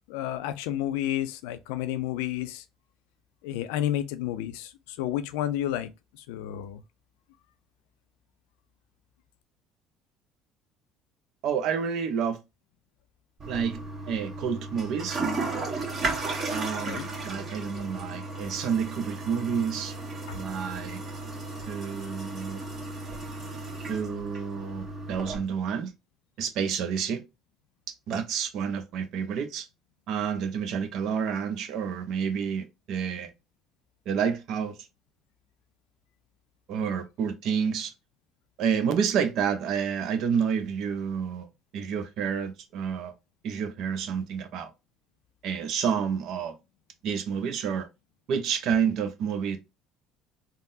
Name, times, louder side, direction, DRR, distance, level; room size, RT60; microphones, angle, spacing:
voice 1, 0.1-2.6 3.4-6.8 16.9-17.1 20.3-20.4, left 12 dB, 85° left, 0.4 m, -31 dB
voice 2, 11.4-12.4 13.5-13.8 14.1-15.2 16.5-19.9 20.3-21.0 21.7-22.6 23.9-25.9 26.4-27.2 28.1-29.7 30.1-33.3 34.1-34.7 36.7-37.9 38.6-43.1 43.4-44.7 45.4-46.5 47.0-47.9 48.3-49.6, right 7 dB, 65° right, 0.6 m, -29 dB
Toilet flush, 13.4-25.4, right 3 dB, 40° right, 1.3 m, -35 dB
3.6 x 2.0 x 2.6 m
supercardioid pair, 85°, 0 cm